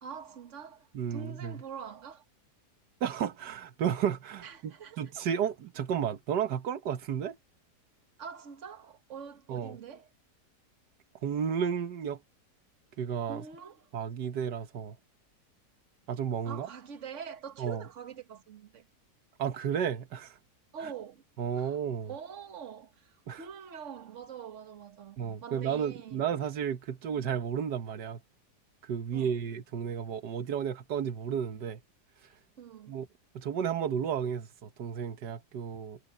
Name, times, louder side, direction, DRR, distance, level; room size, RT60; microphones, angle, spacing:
voice 1, 0.0-2.2 4.4-5.0 8.2-10.1 13.3-13.9 16.4-18.9 20.7-21.2 21.5-21.8 22.0-26.2 29.1-29.4 32.6-33.0, right 7 dB, 50° right, 1.7 m, -44 dB
voice 2, 0.9-1.6 3.0-7.4 9.5-9.8 11.2-12.2 13.0-13.4 13.9-15.0 16.1-16.7 17.6-17.8 19.4-20.4 20.8-20.9 21.4-22.1 23.3-23.5 25.2-28.2 28.8-31.8 32.2-32.4 32.9-33.1 33.4-36.0, right 8 dB, 85° right, 1.7 m, -32 dB
omnidirectional pair, 1.8 m